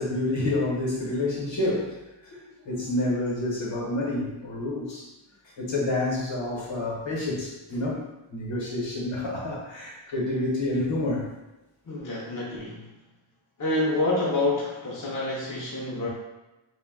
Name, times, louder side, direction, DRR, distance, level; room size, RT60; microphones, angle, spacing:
voice 1, 0.0-5.1 5.6-8.0 8.3-11.3, left 2 dB, 60° left, -3 dB, 1.0 m, -28 dB
voice 2, 11.9-12.9 13.6-16.1, left 2 dB, 40° left, -5 dB, 0.7 m, -27 dB
2.2 x 2.1 x 3.5 m, 1.0 s
wide cardioid pair, 65°, 50 cm